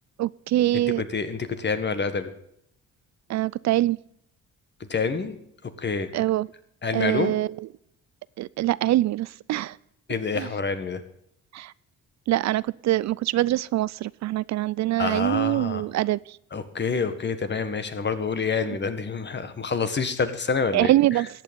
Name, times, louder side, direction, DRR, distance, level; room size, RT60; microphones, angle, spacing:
voice 1, 0.2-1.0 3.3-4.0 6.1-6.5 6.9-7.5 8.4-9.8 10.4-10.5 11.5-11.7 12.3-16.2 20.7-21.3, right 15 dB, 65° right, 0.4 m, -24 dB
voice 2, 1.0-2.3 4.9-5.3 5.8-6.1 6.8-7.3 10.1-11.0 15.0-15.8 16.5-21.2, left 5 dB, 35° left, 1.7 m, -27 dB
14.0 x 8.9 x 5.3 m
cardioid pair, 90°, 30 cm